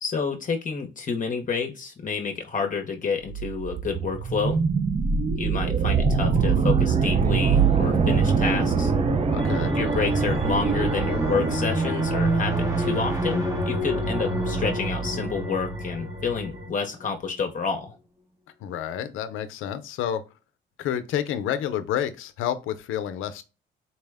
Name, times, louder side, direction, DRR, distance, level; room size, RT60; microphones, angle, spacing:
voice 1, 0.0-4.6 5.4-8.9 9.7-17.9, left 5 dB, 40° left, 0.8 m, -29 dB
sound 1, 3.3-11.6, right 6 dB, 30° right, 0.4 m, -24 dB
sound 2, 5.5-17.1, right 1 dB, 15° right, 0.8 m, -29 dB
voice 2, 9.3-9.8 18.6-20.2 20.8-23.4, left 10 dB, 85° left, 0.5 m, -29 dB
sound 3, 9.4-16.7, right 3 dB, 60° right, 1.0 m, -32 dB
4.2 x 2.1 x 3.4 m
cardioid pair, 90°, 20 cm